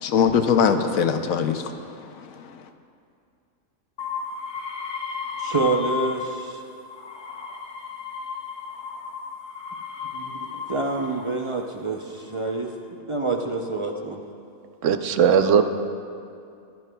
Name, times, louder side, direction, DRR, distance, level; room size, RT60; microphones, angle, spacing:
voice 1, 0.0-2.6, left 7 dB, 80° left, 7 dB, 1.1 m, -22 dB
sound 1, 4.0-6.5 6.9-11.4 12.2-12.7, left 5 dB, 45° left, 0.7 m, -33 dB
voice 2, 5.4-6.6 10.1-12.7 13.1-14.2, right 3 dB, 45° right, 2 dB, 0.4 m, -27 dB
voice 3, 14.8-15.6, right 7 dB, 70° right, 8 dB, 0.9 m, -18 dB
18.5 x 11.0 x 2.3 m, 2.4 s
omnidirectional pair, 1.4 m